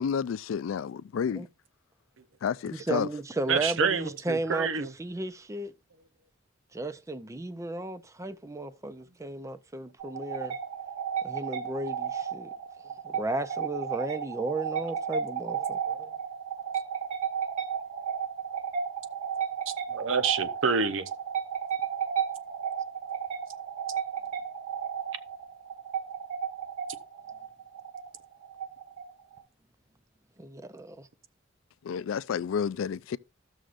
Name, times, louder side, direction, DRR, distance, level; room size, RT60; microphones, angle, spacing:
voice 1, 0.0-1.5 2.4-3.1 31.8-33.2, left 7 dB, 85° left, 0.3 m, -30 dB
voice 2, 2.7-5.7 6.7-10.5 11.2-12.5 13.0-15.8 30.4-31.1, right 2 dB, 15° right, 0.5 m, -34 dB
voice 3, 3.5-4.9 11.7-11.9 15.5-16.1 19.7-21.1, right 5 dB, 75° right, 0.7 m, -29 dB
sound 1, 10.0-29.4, right 7 dB, 40° right, 1.7 m, -33 dB
14.5 x 6.3 x 2.5 m
head